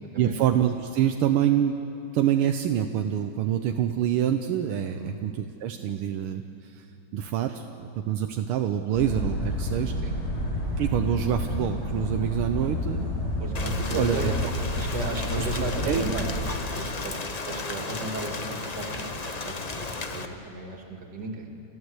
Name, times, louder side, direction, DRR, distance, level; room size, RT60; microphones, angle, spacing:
voice 1, 0.2-1.8 2.1-6.8 7.1-10.0 10.8-13.1 13.9-14.5 15.2-15.5 15.8-16.1, right 10 dB, 80° right, 6 dB, 1.6 m, -26 dB
sound 1, 8.9-16.5, left 1 dB, 15° left, 3.1 m, -30 dB
voice 2, 13.4-21.5, right 2 dB, 50° right, 2 dB, 2.9 m, -35 dB
Rain, 13.5-20.3, left 3 dB, 40° left, 0.5 m, -34 dB
30.0 x 13.5 x 8.0 m, 2.6 s
omnidirectional pair, 2.4 m